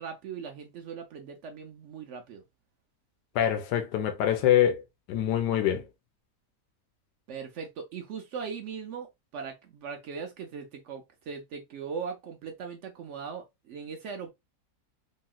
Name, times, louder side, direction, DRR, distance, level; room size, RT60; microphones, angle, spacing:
voice 1, 0.0-2.4 7.3-14.3, right 6 dB, 75° right, 0.6 m, -39 dB
voice 2, 3.3-4.8 5.1-5.9, left 10 dB, 85° left, 1.2 m, -24 dB
3.0 x 2.8 x 2.2 m
omnidirectional pair, 1.8 m